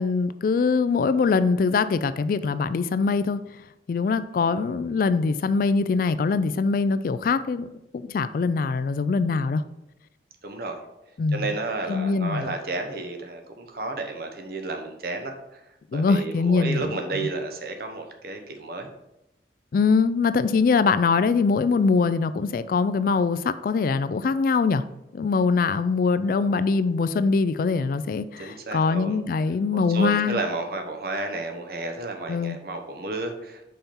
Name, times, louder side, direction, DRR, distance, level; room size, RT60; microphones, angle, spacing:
voice 1, 0.0-3.4 3.9-7.7 7.9-9.6 11.2-11.5 11.9-12.5 15.9-17.3 19.7-24.8 25.1-30.4 32.3-32.6, left 4 dB, 50° left, 13 dB, 0.3 m, -23 dB
voice 2, 10.4-10.8 11.3-15.6 15.9-18.9 28.4-29.2 29.7-33.6, right 3 dB, 60° right, 5 dB, 0.9 m, -32 dB
5.6 x 4.3 x 5.4 m, 0.88 s
head